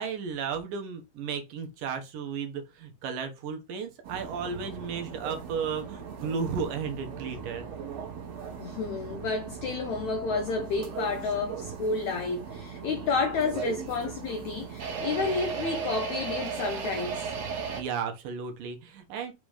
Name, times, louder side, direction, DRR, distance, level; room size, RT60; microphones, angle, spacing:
voice 1, 0.0-7.7 17.8-19.3, right 6 dB, 70° right, 2.6 m, -34 dB
sound 1, 4.0-17.8, right 6 dB, 55° right, 2.3 m, -37 dB
voice 2, 8.6-17.3, left 4 dB, 85° left, 1.6 m, -30 dB
6.1 x 4.0 x 4.9 m
omnidirectional pair, 4.4 m